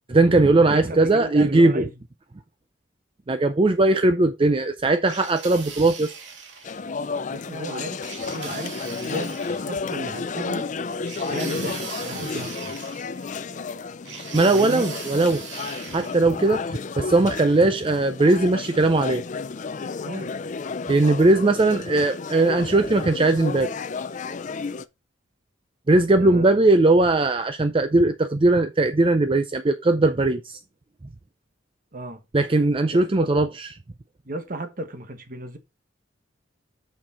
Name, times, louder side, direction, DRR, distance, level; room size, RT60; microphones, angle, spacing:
voice 1, 0.1-1.9 3.3-6.2 14.3-15.4 15.9-19.2 20.9-23.7 25.9-30.6 32.3-33.7, right 2 dB, 25° right, 0.5 m, -19 dB
voice 2, 0.7-1.9 7.3-10.7 11.3-12.8 14.5-14.9 20.0-20.4 26.2-26.6 31.9-32.2 32.9-33.3 34.2-35.6, right 1 dB, 45° right, 1.3 m, -34 dB
sound 1, 5.0-6.8 8.0-9.7 11.0-13.4 14.0-16.2, right 5 dB, 65° right, 2.5 m, -39 dB
sound 2, 6.6-24.9, left 4 dB, 40° left, 0.4 m, -32 dB
6.6 x 6.2 x 4.3 m
head